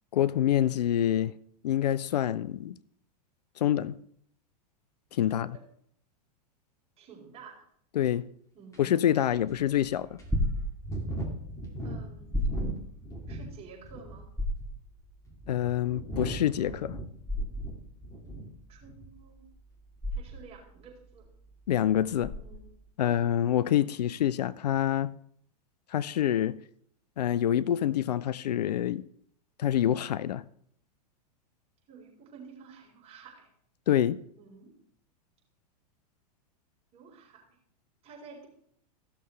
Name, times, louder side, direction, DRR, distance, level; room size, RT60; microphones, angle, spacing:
voice 1, 0.1-1.3 1.6-2.7 3.6-4.0 5.1-5.6 8.0-8.2 8.8-10.2 15.5-17.0 21.7-22.3 23.0-25.1 25.9-26.6 27.2-29.0 29.6-30.4 33.9-34.2, left 11 dB, 75° left, 0.5 m, -26 dB
voice 2, 5.3-5.6 7.0-7.6 8.5-8.9 9.3-9.5 11.8-12.4 13.3-14.3 18.7-19.4 20.1-21.3 22.3-22.7 31.9-33.5 34.3-34.7 36.9-37.5 38.0-38.5, right 5 dB, 30° right, 4.3 m, -51 dB
sound 1, 8.0-8.1 8.7-8.8 9.5-9.6 10.2-13.5 13.8-14.3 15.0-18.5 18.8-19.1, right 1 dB, 15° left, 2.3 m, -39 dB
sound 2, 10.2-22.8, left 1 dB, 5° right, 2.2 m, -34 dB
15.5 x 6.8 x 3.3 m
hypercardioid pair, 105°, 21 cm